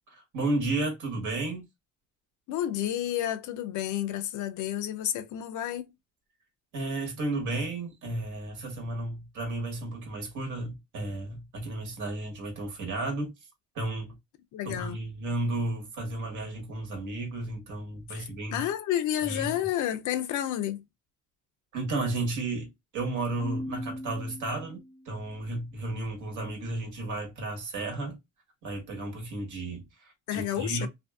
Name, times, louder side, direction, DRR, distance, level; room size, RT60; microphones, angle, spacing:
voice 1, 0.1-1.7 6.7-13.3 13.7-14.1 14.6-18.7 19.3-19.5 21.7-28.2 28.6-30.9, right 2 dB, 80° right, 1.2 m, -33 dB
voice 2, 2.5-5.9 14.5-15.0 18.1-20.8 30.3-30.9, left 11 dB, 80° left, 0.5 m, -30 dB
Keyboard (musical), 23.4-25.2, equal, 10° left, 0.3 m, -39 dB
2.5 x 2.4 x 2.2 m
cardioid pair, 90°, 30 cm